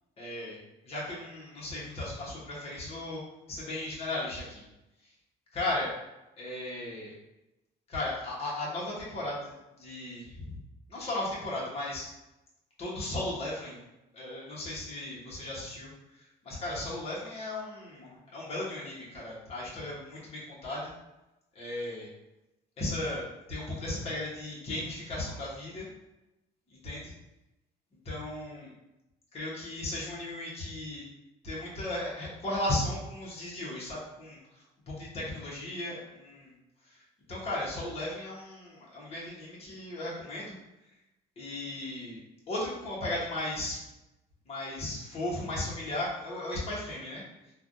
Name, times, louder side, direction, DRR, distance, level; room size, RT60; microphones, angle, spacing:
voice 1, 0.2-0.6 0.8-3.2 3.5-4.6 5.5-5.9 6.4-7.1 7.9-10.6 10.9-12.1 12.8-13.8 14.1-15.9 16.4-20.9 21.5-22.1 22.8-23.2 23.5-25.9 26.8-27.1 28.0-28.7 29.3-31.0 31.4-34.4 34.9-36.5 36.9-37.0 37.3-40.5 41.4-42.2 42.5-43.8 44.5-47.2, left 1 dB, 35° left, -6 dB, 1.2 m, -36 dB
3.3 x 2.4 x 2.6 m, 0.96 s
cardioid pair, 110°, 17 cm